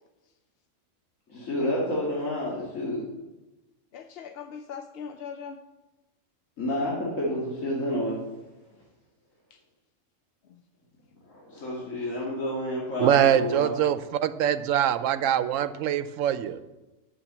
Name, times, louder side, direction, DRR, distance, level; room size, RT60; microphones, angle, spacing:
voice 1, 1.3-3.0 6.6-8.2 11.3-13.7, left 1 dB, 85° left, -6 dB, 2.3 m, -29 dB
voice 2, 3.9-5.6 9.5-9.6 10.5-10.6 11.6-11.7, left 7 dB, 60° left, 8 dB, 0.7 m, -40 dB
voice 3, 13.0-16.6, right 10 dB, 90° right, 13 dB, 1.0 m, -23 dB
8.8 x 6.9 x 7.3 m, 1.1 s
omnidirectional pair, 1.3 m